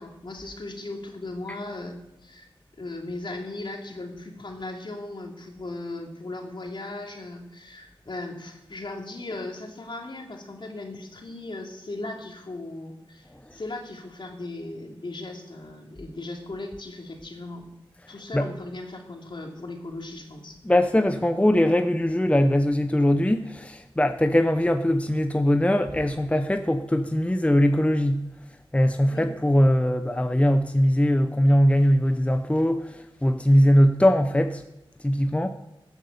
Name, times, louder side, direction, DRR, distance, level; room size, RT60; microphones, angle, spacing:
voice 1, 0.0-2.5 2.8-17.7 18.1-20.6 29.1-29.3, left 2 dB, 60° left, 2 dB, 2.7 m, -37 dB
voice 2, 20.6-28.3 28.7-34.6 35.0-35.5, equal, 15° left, 8 dB, 0.7 m, -21 dB
15.5 x 8.1 x 6.6 m, 0.90 s
cardioid pair, 50°, 9 cm